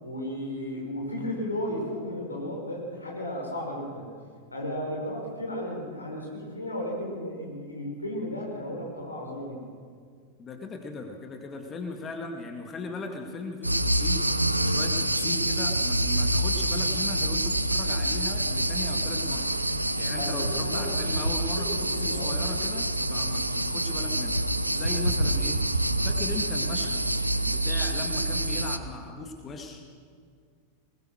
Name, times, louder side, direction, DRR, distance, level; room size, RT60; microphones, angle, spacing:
voice 1, 0.0-4.1 4.5-9.6 20.1-21.2 21.7-22.2 24.8-25.0, left 1 dB, 80° left, 0 dB, 5.2 m, -34 dB
voice 2, 10.4-19.5 20.0-24.4 24.7-29.8, left 3 dB, 25° left, 3 dB, 2.2 m, -38 dB
sound 1, 13.6-28.8, right 1 dB, 85° right, 0.9 m, -27 dB
21.5 x 20.5 x 6.5 m, 2.1 s
figure-of-eight pair, 90°, 0 cm